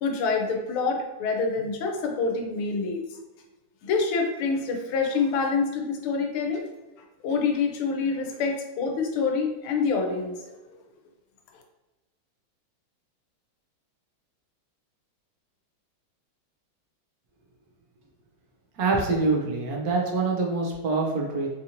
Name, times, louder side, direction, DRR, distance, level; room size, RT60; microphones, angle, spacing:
voice 1, 0.0-3.0 3.8-6.6 7.2-10.5, left 4 dB, 90° left, 2 dB, 1.5 m, -26 dB
voice 2, 18.8-21.5, right 3 dB, 75° right, -1 dB, 0.8 m, -25 dB
4.3 x 2.5 x 2.8 m, 1.1 s
omnidirectional pair, 2.3 m